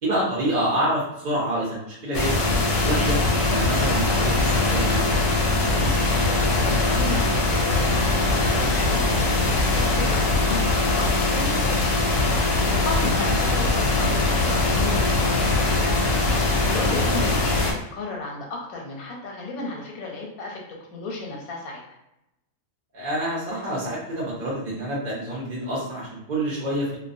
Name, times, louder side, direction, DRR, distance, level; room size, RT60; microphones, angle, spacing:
voice 1, 0.0-3.2 3.5-5.2 13.2-13.3 22.9-26.9, right 1 dB, 50° right, -6 dB, 0.5 m, -27 dB
sound 1, 2.1-17.7, left 2 dB, 70° left, 0.8 m, -21 dB
voice 2, 5.6-6.0 6.2-9.1 9.7-12.1 12.8-16.0 16.7-17.7 17.9-20.6 20.9-21.8, left 2 dB, 90° left, -1 dB, 1.1 m, -33 dB
2.3 x 2.1 x 2.5 m, 0.87 s
omnidirectional pair, 1.5 m